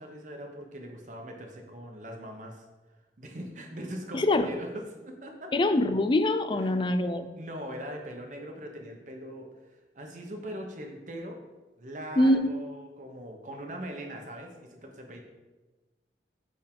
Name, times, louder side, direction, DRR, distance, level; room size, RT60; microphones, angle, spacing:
voice 1, 0.0-2.6 3.2-5.5 6.5-6.9 7.4-9.5 9.9-11.4 11.8-15.2, equal, 45° right, 3 dB, 0.9 m, -41 dB
voice 2, 4.1-4.5 5.5-7.3 12.2-12.5, left 1 dB, 25° left, 9 dB, 0.3 m, -24 dB
8.8 x 3.6 x 3.7 m, 1.2 s
head